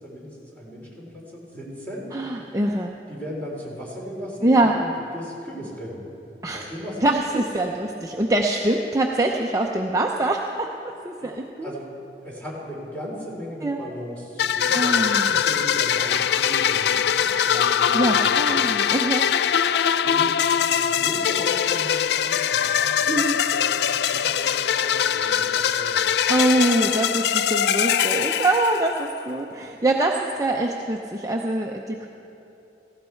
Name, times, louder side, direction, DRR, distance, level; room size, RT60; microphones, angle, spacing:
voice 1, 0.0-2.1 2.4-2.6 3.1-6.0 6.5-7.1 11.2-11.3 11.6-11.9 12.2-18.6 20.0-20.3 20.8-23.2 23.5-26.4, equal, 10° left, -4 dB, 3.4 m, -37 dB
voice 2, 2.1-3.0 4.4-4.8 6.4-6.6 7.0-11.7 13.6-13.8 14.7-15.3 17.3-17.6 17.9-19.3 23.1-23.4 26.3-32.1, right 2 dB, 20° right, 1 dB, 0.6 m, -24 dB
sound 1, 14.4-29.2, left 8 dB, 65° left, 0.3 m, -22 dB
17.5 x 15.5 x 4.5 m, 2.9 s
head